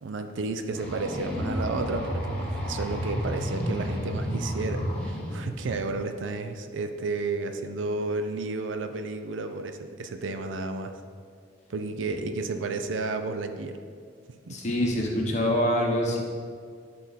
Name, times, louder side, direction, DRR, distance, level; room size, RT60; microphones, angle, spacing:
voice 1, 0.0-11.0 11.7-13.8 14.5-14.7, right 3 dB, 80° right, 7 dB, 0.5 m, -32 dB
sound 1, 0.7-5.7, equal, 5° left, 1.0 m, -31 dB
voice 2, 14.5-16.2, equal, 35° left, -1 dB, 1.0 m, -25 dB
10.5 x 3.8 x 4.0 m, 2.1 s
head